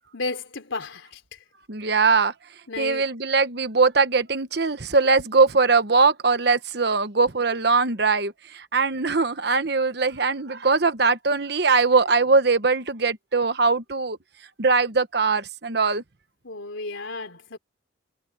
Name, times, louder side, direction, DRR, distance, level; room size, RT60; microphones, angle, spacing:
voice 1, 0.1-1.4 2.7-3.1 16.4-17.6, left 3 dB, 85° left, 3.6 m, -33 dB
voice 2, 1.7-2.3 2.8-14.2 14.6-16.0, right 4 dB, 55° right, 1.1 m, -21 dB
head